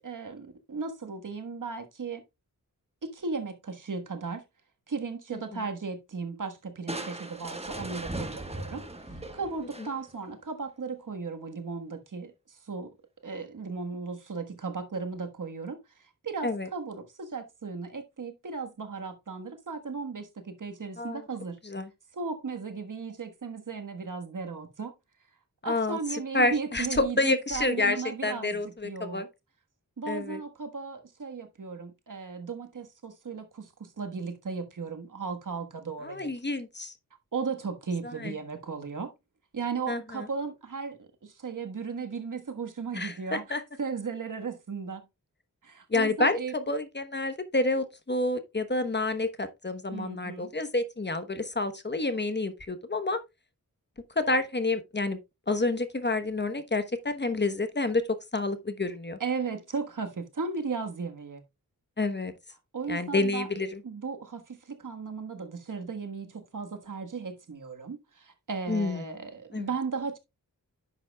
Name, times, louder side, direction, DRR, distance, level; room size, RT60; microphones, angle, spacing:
voice 1, 0.0-2.2 3.0-4.4 4.9-8.8 9.3-12.9 13.2-15.8 16.2-21.6 22.1-24.9 25.6-29.3 30.0-36.3 37.3-39.1 39.5-45.0 45.6-46.5 49.9-50.5 59.2-61.4 62.7-63.5 63.8-70.2, right 5 dB, 65° right, 1.5 m, -36 dB
voice 2, 5.3-5.6 16.4-16.7 21.0-21.2 21.6-21.9 25.6-29.2 30.1-30.4 36.0-36.9 38.0-38.3 39.9-40.2 42.9-43.6 45.9-53.2 54.2-55.2 55.5-59.2 62.0-62.3 62.9-63.8 68.7-69.0 69.5-69.7, left 2 dB, 30° left, 1.0 m, -29 dB
Crushing, 6.9-10.3, right 2 dB, 20° right, 1.3 m, -38 dB
10.5 x 7.3 x 2.3 m
wide cardioid pair, 60°, 34 cm